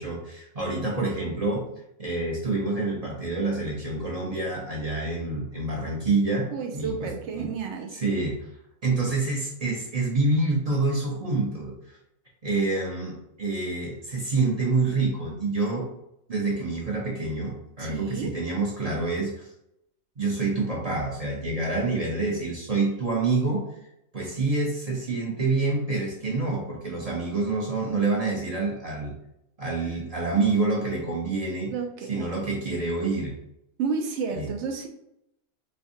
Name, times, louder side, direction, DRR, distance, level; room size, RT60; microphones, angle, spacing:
voice 1, 0.0-1.6 2.0-6.5 6.7-7.5 7.9-8.4 8.8-11.9 12.4-15.9 16.3-19.5 20.2-23.6 24.1-29.1 29.6-31.7 32.1-33.3 34.3-34.5, right 3 dB, 35° right, -3 dB, 0.6 m, -27 dB
voice 2, 6.5-7.9 17.8-18.3 31.7-32.4 33.8-34.9, right 5 dB, 65° right, 4 dB, 0.8 m, -31 dB
4.3 x 2.3 x 2.6 m, 0.79 s
omnidirectional pair, 1.5 m